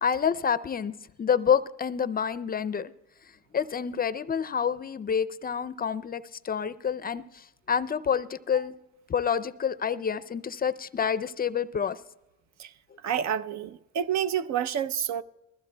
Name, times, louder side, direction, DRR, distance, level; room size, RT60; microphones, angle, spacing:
voice 1, 0.0-0.9 1.2-2.9 3.5-8.7 9.1-12.0, left 7 dB, 30° left, 0.4 m, -28 dB
voice 2, 13.0-15.2, right 9 dB, 65° right, 0.6 m, -29 dB
21.0 x 14.5 x 2.2 m
cardioid pair, 90°, 30 cm